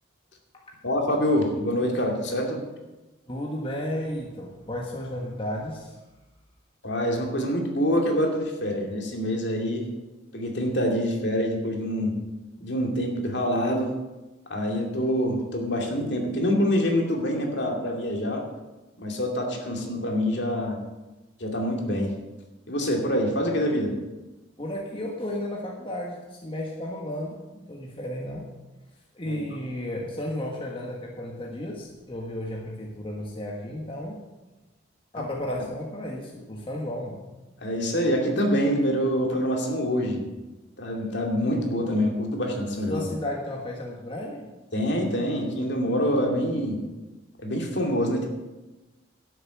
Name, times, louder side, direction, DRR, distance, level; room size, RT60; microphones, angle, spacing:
voice 1, 0.8-2.6 6.8-9.9 10.3-12.1 12.6-13.9 14.5-18.4 19.0-20.8 21.4-22.1 22.7-23.9 29.2-29.4 37.6-40.3 40.8-43.1 44.7-46.8 47.4-48.3, equal, 55° left, 1 dB, 2.4 m, -26 dB
voice 2, 3.3-6.0 24.6-28.5 29.1-34.2 35.1-37.2 42.9-44.5, left 1 dB, 25° left, -1 dB, 1.4 m, -33 dB
12.0 x 7.1 x 8.4 m, 1.1 s
head